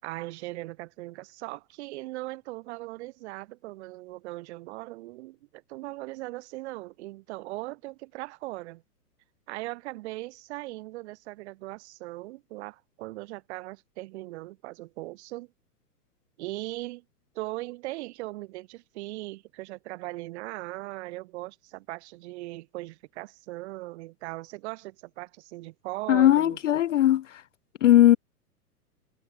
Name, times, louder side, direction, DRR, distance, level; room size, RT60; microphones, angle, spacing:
voice 1, 0.0-8.8 9.5-15.5 16.4-17.0 17.3-26.6, right 19 dB, 45° right, 6.4 m, -39 dB
voice 2, 26.1-27.2 27.8-28.2, left 12 dB, 50° left, 0.5 m, -18 dB
figure-of-eight pair, 110°, 48 cm